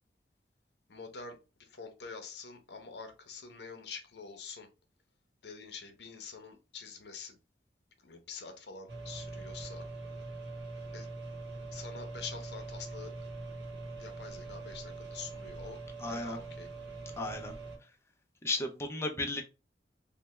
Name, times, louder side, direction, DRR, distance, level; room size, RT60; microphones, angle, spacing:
voice 1, 0.9-4.7 5.4-7.4 8.0-9.9 10.9-11.1 11.7-13.1 14.0-16.7, left 5 dB, 75° left, 0.7 m, -46 dB
sound 1, 8.9-17.8, right 3 dB, 75° right, 1.0 m, -43 dB
voice 2, 16.0-16.4 17.2-17.5 18.4-19.4, left 2 dB, 15° left, 0.4 m, -34 dB
3.2 x 2.1 x 3.1 m
head